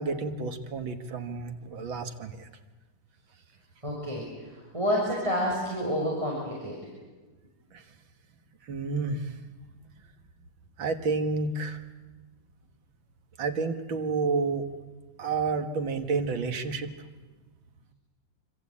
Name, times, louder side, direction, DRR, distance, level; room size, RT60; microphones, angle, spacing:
voice 1, 0.0-2.5 7.7-7.8 8.7-9.3 10.8-11.8 13.4-14.7 15.2-16.9, right 4 dB, 85° right, 7 dB, 2.4 m, -30 dB
voice 2, 3.8-6.8, equal, 15° right, -4 dB, 6.1 m, -29 dB
27.0 x 25.0 x 8.6 m, 1.3 s
omnidirectional pair, 2.1 m